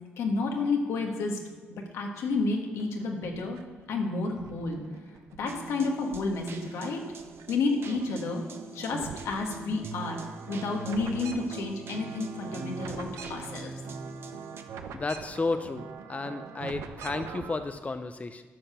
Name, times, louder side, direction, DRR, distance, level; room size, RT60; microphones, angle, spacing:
voice 1, 0.2-1.4 1.7-3.6 3.9-4.8 5.4-7.0 7.5-8.4 8.7-10.2 10.5-13.7, left 3 dB, 80° left, 2 dB, 1.7 m, -30 dB
sound 1, 2.3-3.8 4.2-5.8 6.2-7.5 7.7-17.7, right 6 dB, 80° right, 0.8 m, -44 dB
sound 2, 5.5-14.6, right 4 dB, 60° right, 1.1 m, -43 dB
voice 2, 14.9-18.4, left 3 dB, 30° left, 9 dB, 0.7 m, -33 dB
11.0 x 5.8 x 6.9 m, 1.4 s
supercardioid pair, 55°, 5 cm